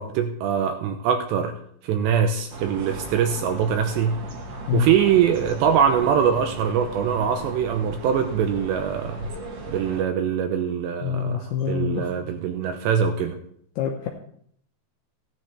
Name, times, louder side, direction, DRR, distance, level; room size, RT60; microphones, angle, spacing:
voice 1, 0.0-1.5 1.8-4.2 4.7-9.2 9.7-13.4, right 8 dB, 80° right, 5 dB, 2.7 m, -23 dB
sound 1, 2.5-10.0, right 3 dB, 60° right, 1.7 m, -37 dB
voice 2, 11.0-12.1 13.8-14.1, left 9 dB, 75° left, 1 dB, 2.4 m, -26 dB
15.5 x 10.5 x 3.3 m, 0.65 s
omnidirectional pair, 5.7 m